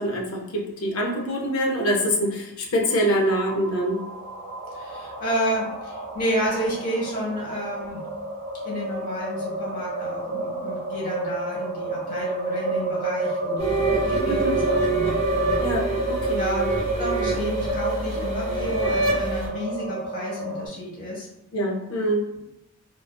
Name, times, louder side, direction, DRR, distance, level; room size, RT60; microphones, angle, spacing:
voice 1, 0.0-4.0 14.3-14.6 15.6-16.4 21.5-22.3, equal, 80° left, 0 dB, 0.6 m, -25 dB
sound 1, 2.8-20.7, right 2 dB, 85° right, 0.6 m, -30 dB
voice 2, 4.7-8.0 8.6-15.6 16.3-21.3, equal, 40° left, -5 dB, 0.9 m, -31 dB
sound 2, 13.6-19.5, right 2 dB, 30° right, 0.7 m, -26 dB
2.4 x 2.4 x 2.3 m, 0.90 s
head